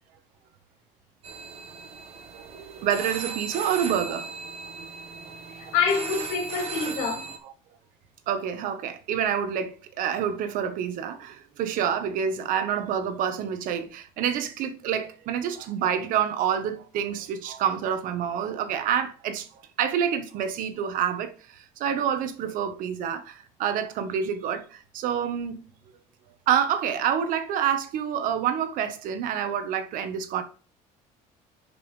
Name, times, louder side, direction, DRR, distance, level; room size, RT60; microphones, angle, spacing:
sound 1, 1.2-7.4, right 5 dB, 45° right, 1.3 m, -37 dB
voice 1, 2.3-4.3 8.3-19.5 19.8-25.6 26.5-30.4, right 8 dB, 65° right, 1.2 m, -27 dB
voice 2, 5.5-7.3, left 5 dB, 85° left, 3.0 m, -26 dB
10.5 x 5.4 x 3.3 m
cardioid pair, 110°, 15 cm